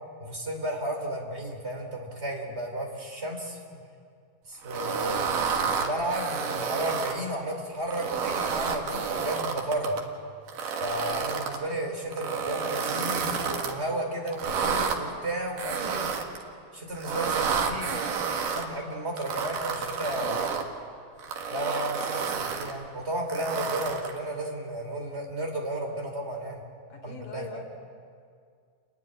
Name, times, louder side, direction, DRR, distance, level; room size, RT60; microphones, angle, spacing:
voice 1, 0.2-3.8 4.5-10.0 10.8-16.1 16.7-17.9 18.5-20.4 21.5-26.6 27.0-27.6, right 1 dB, 20° right, 1 dB, 3.3 m, -33 dB
sound 1, 4.7-7.2 7.8-10.0 10.5-11.6 12.1-13.7 14.3-15.0 15.6-16.4 17.0-18.7 19.2-20.7 21.2-22.7 23.3-24.2, right 6 dB, 80° right, 3.2 m, -30 dB
voice 2, 26.9-27.6, left 4 dB, 85° left, 1 dB, 5.0 m, -42 dB
29.0 x 12.5 x 10.0 m, 2.2 s
omnidirectional pair, 3.7 m